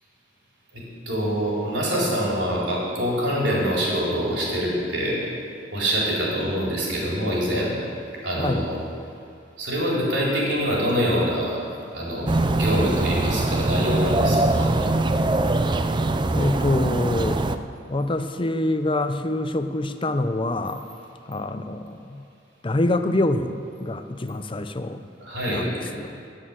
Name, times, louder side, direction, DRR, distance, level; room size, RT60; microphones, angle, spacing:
voice 1, 0.7-5.2 5.7-7.8 8.2-8.8 9.6-14.8 25.2-25.7, equal, 70° right, -5 dB, 4.2 m, -25 dB
voice 2, 8.4-8.7 16.3-17.4 17.9-20.9 21.3-22.2 22.6-25.0 25.5-26.2, left 1 dB, 30° left, 9 dB, 0.6 m, -25 dB
sound 1, 12.3-17.6, right 2 dB, 25° right, 0.4 m, -22 dB
18.5 x 6.5 x 7.5 m, 2.5 s
head